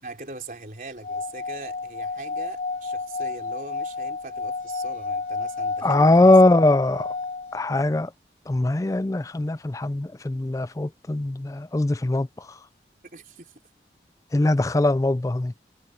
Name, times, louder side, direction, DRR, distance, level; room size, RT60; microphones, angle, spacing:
voice 1, 0.0-6.5 13.1-13.5, right 3 dB, 50° right, 4.2 m, -41 dB
Singing / Glass, 1.0-7.6, left 4 dB, 45° left, 2.8 m, -31 dB
voice 2, 5.8-7.1 7.5-8.1 8.5-12.3 14.3-15.5, left 2 dB, 20° left, 0.4 m, -21 dB
head